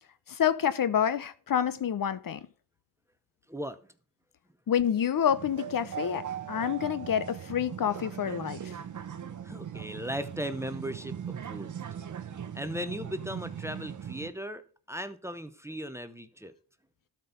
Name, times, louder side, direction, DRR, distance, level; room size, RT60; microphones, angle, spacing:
voice 1, 0.3-2.4 4.7-8.8, left 9 dB, 55° left, 0.7 m, -28 dB
voice 2, 3.5-3.8 9.4-11.7 12.5-16.5, equal, 5° right, 0.8 m, -37 dB
sound 1, 5.3-14.3, right 8 dB, 45° right, 0.9 m, -39 dB
12.5 x 4.5 x 5.2 m
cardioid pair, 80°, 41 cm